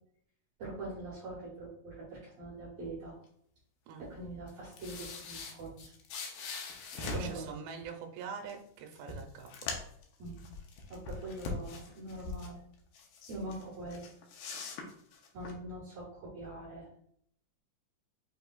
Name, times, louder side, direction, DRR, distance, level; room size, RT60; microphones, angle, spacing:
voice 1, 0.6-3.2 4.0-5.9 7.1-7.5 10.2-10.4 10.9-12.6 13.3-14.1 15.3-16.9, right 2 dB, 60° right, -6 dB, 1.9 m, -43 dB
sound 1, 4.5-7.4 8.5-8.6 8.9-10.0 10.4-12.5 12.9-13.6 13.9-15.5, left 4 dB, 75° left, 2.0 m, -41 dB
voice 2, 6.9-9.5, right 6 dB, 85° right, 3 dB, 2.5 m, -44 dB
6.0 x 3.1 x 2.3 m, 0.66 s
omnidirectional pair, 4.4 m